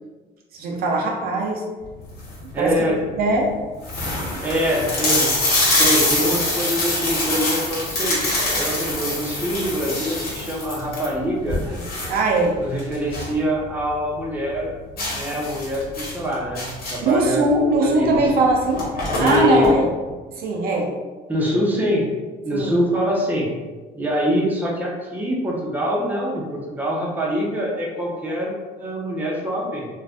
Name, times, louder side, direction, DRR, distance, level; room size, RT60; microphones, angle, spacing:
voice 1, 0.5-1.6 2.4-2.9 3.2-3.6 12.1-12.6 17.0-18.9 19.2-19.9 20.3-20.9 22.5-22.8, right 2 dB, 65° right, 0 dB, 0.6 m, -20 dB
sound 1, 2.0-2.5 3.1-3.2 3.4-3.5 3.8-13.4 13.7-13.8 14.2-14.3 15.0-17.2 18.1-18.3 18.5-19.7, left 2 dB, 60° left, 1.2 m, -24 dB
voice 2, 2.5-3.0 4.4-5.4 5.8-11.8 12.6-14.7 15.1-17.5 17.8-18.1 19.2-19.7 21.3-22.1 22.4-23.5 24.0-29.9, equal, 10° right, -3 dB, 0.7 m, -24 dB
2.5 x 2.2 x 3.4 m, 1.3 s
cardioid pair, 110°, 17 cm